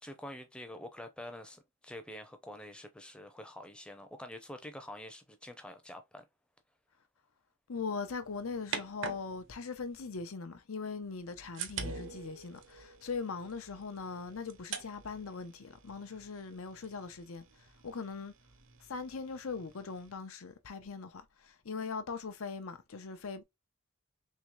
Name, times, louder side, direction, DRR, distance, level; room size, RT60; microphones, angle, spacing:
voice 1, 0.0-6.2, left 1 dB, 5° left, 0.5 m, -47 dB
voice 2, 7.7-17.4 17.8-18.3 18.9-23.4, left 4 dB, 85° left, 0.7 m, -40 dB
sound 1, 8.0-10.3 11.0-20.1, right 5 dB, 60° right, 0.7 m, -46 dB
3.7 x 3.2 x 3.1 m
head